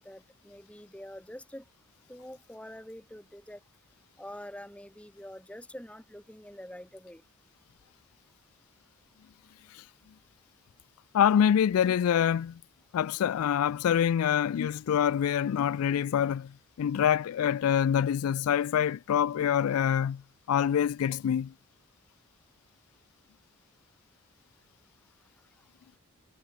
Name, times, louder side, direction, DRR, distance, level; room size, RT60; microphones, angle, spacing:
voice 1, 0.0-1.6 2.1-3.6 4.2-7.2, equal, 5° left, 6.1 m, -45 dB
voice 2, 11.1-12.6 12.9-16.5 16.8-20.2 20.5-21.5, left 9 dB, 85° left, 0.3 m, -25 dB
head